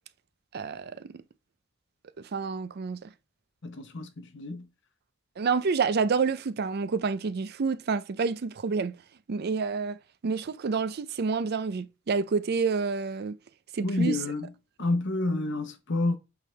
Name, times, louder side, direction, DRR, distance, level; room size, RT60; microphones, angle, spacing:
voice 1, 0.5-1.2 2.3-3.1 5.4-9.0 9.3-10.0 10.2-13.4 13.7-14.2, right 5 dB, 55° right, 0.5 m, -28 dB
voice 2, 3.6-4.7 13.8-14.5 14.8-16.2, left 2 dB, 65° left, 1.0 m, -29 dB
8.3 x 3.6 x 3.2 m
head